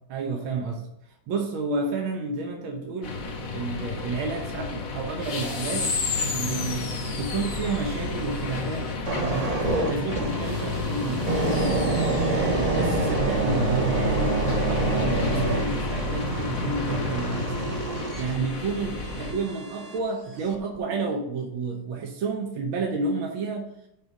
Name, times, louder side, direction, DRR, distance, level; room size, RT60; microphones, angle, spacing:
voice 1, 0.1-0.9 1.3-3.2 3.5-6.0 6.3-12.0 12.3-17.8 18.1-23.7, right 4 dB, 75° right, 1 dB, 1.8 m, -31 dB
sound 1, 3.0-19.3, left 3 dB, 50° left, 1.2 m, -30 dB
sound 2, 9.0-20.0 20.5-20.8, right 2 dB, 55° right, 0.4 m, -27 dB
6.6 x 4.4 x 5.3 m, 0.83 s
omnidirectional pair, 2.3 m